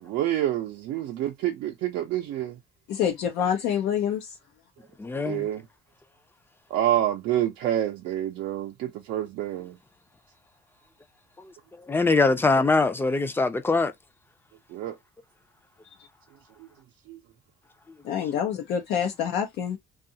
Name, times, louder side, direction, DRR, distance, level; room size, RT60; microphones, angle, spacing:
voice 1, 0.0-2.6 5.2-5.6 6.7-9.8 14.7-15.0 17.1-17.2, right 12 dB, 80° right, 0.5 m, -27 dB
voice 2, 2.9-4.3 18.0-19.8, left 8 dB, 85° left, 0.6 m, -26 dB
voice 3, 5.0-5.5 11.9-13.9, left 3 dB, 15° left, 0.5 m, -22 dB
2.6 x 2.4 x 2.6 m
cardioid pair, 110°, 17 cm